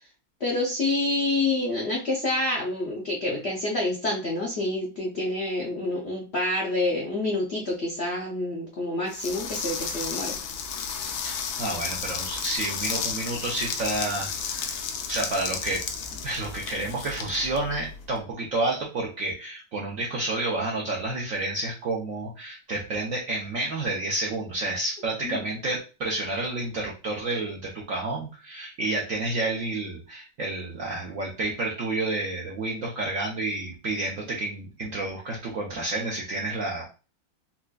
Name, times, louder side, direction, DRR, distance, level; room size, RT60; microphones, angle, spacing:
voice 1, 0.4-10.4 25.2-25.4, left 2 dB, 70° left, -1 dB, 0.6 m, -27 dB
sound 1, 9.1-18.1, left 6 dB, 90° left, 1.3 m, -33 dB
voice 2, 11.2-14.8 15.1-15.8 16.2-36.8, right 2 dB, 70° right, -2 dB, 0.7 m, -30 dB
4.3 x 2.4 x 2.2 m, 0.33 s
omnidirectional pair, 2.1 m